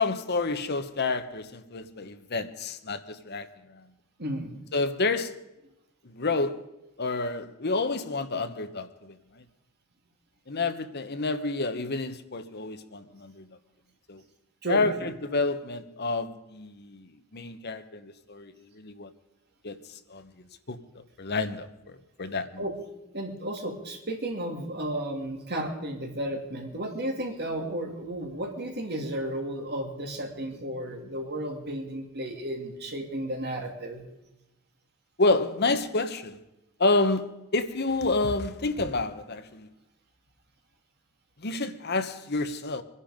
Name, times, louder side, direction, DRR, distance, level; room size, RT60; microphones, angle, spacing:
voice 1, 0.0-3.5 3.7-3.8 4.7-5.3 6.0-6.6 7.0-9.1 10.5-13.4 14.1-14.2 14.7-17.1 17.3-19.1 19.6-19.8 20.1-20.2 20.7-20.8 21.2-22.6 35.2-36.4 36.8-39.7 41.4-42.8, left 3 dB, 50° left, 1.1 m, -29 dB
voice 2, 4.2-4.6 14.6-15.1 22.6-22.8 23.1-34.1, right 1 dB, 50° right, 3.1 m, -33 dB
24.0 x 11.0 x 5.2 m
head